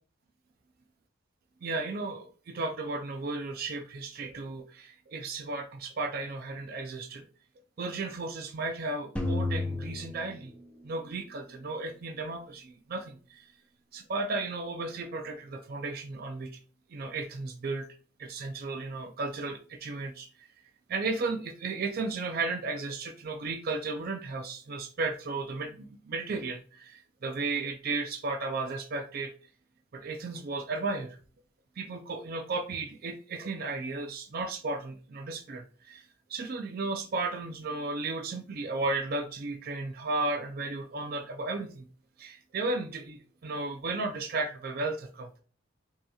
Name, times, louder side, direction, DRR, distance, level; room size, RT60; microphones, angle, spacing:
voice 1, 1.6-7.3 7.8-10.5 10.8-13.5 13.9-16.6 16.9-17.9 18.2-20.5 20.9-29.3 29.9-31.2 31.8-41.9 42.2-45.4, right 3 dB, 45° right, 5 dB, 0.4 m, -34 dB
sound 1, 9.2-11.3, left 2 dB, 5° left, 0.6 m, -33 dB
5.2 x 2.8 x 2.3 m, 0.39 s
head